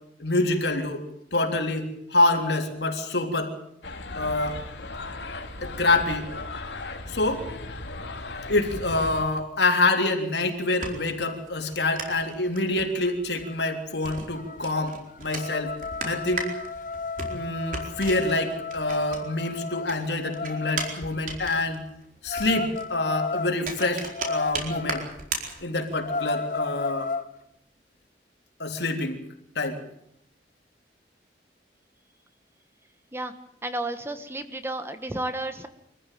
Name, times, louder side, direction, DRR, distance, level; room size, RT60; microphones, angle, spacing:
voice 1, 0.2-1.0 1.3-3.5 4.2-4.6 5.6-6.3 7.1-7.5 8.5-15.7 16.0-16.5 17.3-21.8 22.2-25.0 25.6-27.1 28.6-29.2 29.6-29.8, left 2 dB, 70° left, 4 dB, 3.5 m, -26 dB
sound 1, 3.8-9.3, left 2 dB, 90° left, 2.8 m, -37 dB
sound 2, 10.5-19.5 19.8-26.1, right 3 dB, 50° right, 4.5 m, -37 dB
sound 3, 13.1-13.2 13.4-13.7 14.1-21.0 22.3-25.1 25.5-25.6 25.9-27.3, left 4 dB, 50° left, 1.1 m, -34 dB
voice 2, 33.6-35.7, right 1 dB, 15° right, 9 dB, 1.4 m, -32 dB
24.5 x 15.0 x 9.3 m, 0.76 s
head